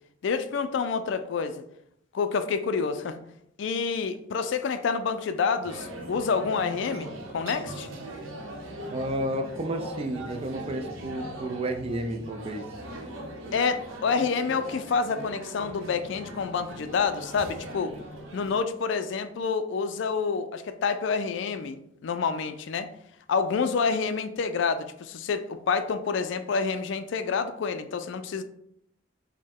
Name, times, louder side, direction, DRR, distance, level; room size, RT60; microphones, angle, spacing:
voice 1, 0.2-1.6 2.1-3.2 3.6-7.9 13.5-17.9 18.3-22.9 23.3-28.4, left 5 dB, 65° left, 10 dB, 0.4 m, -28 dB
sound 1, 5.6-18.6, right 1 dB, 85° right, 0.8 m, -40 dB
voice 2, 8.9-12.6, right 1 dB, 30° right, 5 dB, 0.4 m, -31 dB
5.2 x 2.1 x 3.5 m, 0.73 s
head